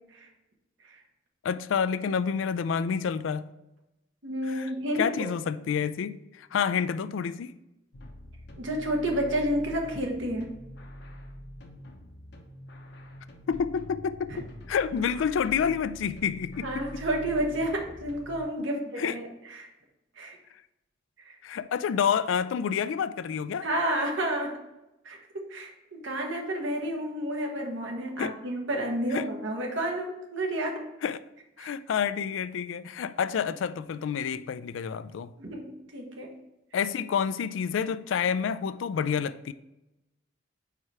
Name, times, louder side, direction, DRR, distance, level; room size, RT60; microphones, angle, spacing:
voice 1, 1.4-3.5 4.5-4.7 5.0-7.5 13.5-14.3 14.7-16.9 19.0-19.2 21.4-23.7 28.2-28.3 29.1-29.2 31.0-31.2 31.6-35.3 36.7-39.5, left 7 dB, 75° left, 0.3 m, -28 dB
voice 2, 4.2-5.3 8.6-10.5 14.3-14.4 16.6-19.3 19.5-19.7 20.2-20.4 21.2-21.3 23.6-24.6 25.0-25.2 25.5-30.8 31.6-31.7 35.4-36.3, right 1 dB, 75° right, 1.2 m, -30 dB
sound 1, 7.9-18.4, left 1 dB, 55° left, 0.8 m, -45 dB
4.9 x 4.7 x 4.2 m
head